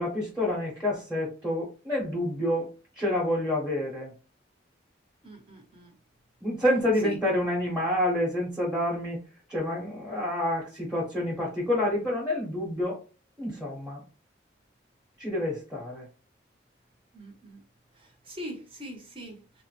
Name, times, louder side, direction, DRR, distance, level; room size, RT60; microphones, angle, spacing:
voice 1, 0.0-2.7 3.0-4.1 6.4-9.2 9.5-13.0 13.4-14.0 15.2-16.1, left 1 dB, 5° right, 1.0 m, -28 dB
voice 2, 5.2-5.9 7.0-7.2 17.1-17.6 17.9-19.6, equal, 30° right, 0.9 m, -42 dB
3.3 x 2.1 x 3.1 m
head